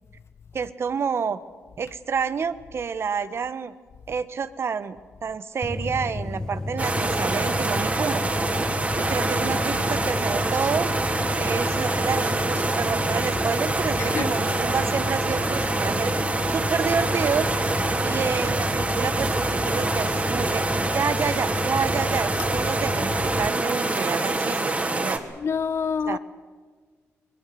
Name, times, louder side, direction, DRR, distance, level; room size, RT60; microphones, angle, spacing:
voice 1, 0.5-1.4 1.8-3.7 4.1-8.3 9.0-10.9 11.4-16.1 16.5-17.5 18.0-20.6 20.9-25.2 26.1-26.2, right 6 dB, 55° right, 1.2 m, -29 dB
sound 1, 5.6-23.5, left 2 dB, 15° left, 1.2 m, -31 dB
sound 2, 6.8-25.2, right 2 dB, 25° right, 2.9 m, -26 dB
voice 2, 9.1-9.8 14.0-14.4 25.3-26.2, left 6 dB, 55° left, 1.0 m, -29 dB
23.0 x 20.0 x 7.7 m
cardioid pair, 70°, 5 cm